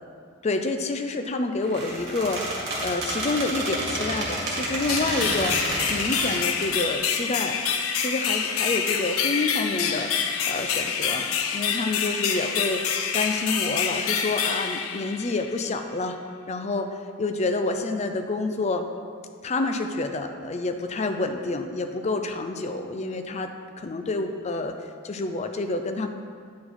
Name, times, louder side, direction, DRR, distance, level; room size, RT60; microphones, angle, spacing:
voice 1, 0.4-2.5 2.8-5.6 5.9-7.6 7.9-11.3 11.5-12.8 13.1-16.2 16.5-18.9 19.4-24.8 25.0-26.1, left 3 dB, 30° left, 6 dB, 0.4 m, -28 dB
Squeak, 1.6-6.8, right 1 dB, 50° right, 1.9 m, -30 dB
sound 1, 4.9-15.6, left 7 dB, 90° left, 0.6 m, -27 dB
9.3 x 4.6 x 4.2 m, 2.2 s
head